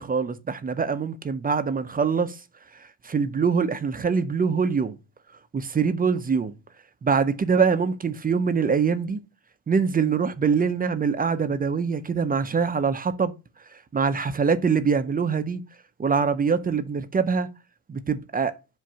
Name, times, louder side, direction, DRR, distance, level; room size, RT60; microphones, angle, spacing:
voice 1, 0.0-2.4 3.0-5.0 5.5-6.5 7.0-9.2 9.7-13.3 13.9-15.6 16.0-17.5 17.9-18.5, right 5 dB, 20° right, 0.4 m, -24 dB
7.6 x 2.5 x 5.5 m
cardioid pair, 115°, 50 cm